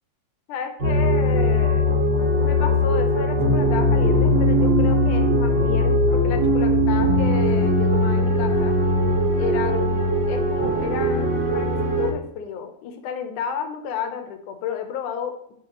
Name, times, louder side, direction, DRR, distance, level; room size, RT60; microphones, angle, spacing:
voice 1, 0.5-1.9 2.4-8.8 9.4-11.7 12.0-15.3, left 8 dB, 75° left, 6 dB, 2.4 m, -31 dB
sound 1, 0.8-12.1, left 1 dB, 40° right, 2.8 m, -20 dB
sound 2, 1.4-12.0, right 2 dB, 75° right, 4.9 m, -34 dB
12.0 x 5.7 x 3.1 m, 0.70 s
omnidirectional pair, 3.7 m